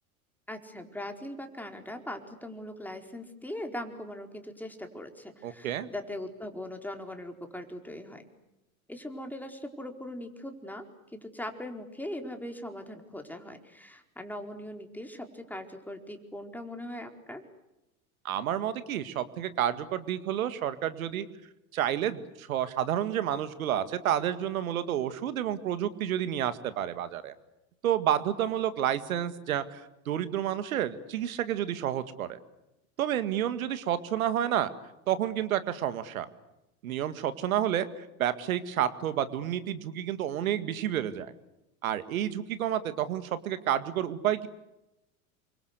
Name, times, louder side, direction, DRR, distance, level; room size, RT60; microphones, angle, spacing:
voice 1, 0.5-8.2 8.9-10.9 11.1-17.4, left 1 dB, 5° left, 4 dB, 4.4 m, -40 dB
voice 2, 5.4-5.9 18.2-21.3 21.7-27.3 27.8-32.4 33.0-34.7 35.1-36.3 36.8-41.3 41.8-44.5, right 10 dB, 75° right, 12 dB, 2.1 m, -30 dB
29.0 x 25.0 x 8.2 m, 0.92 s
hypercardioid pair, 80°, 43 cm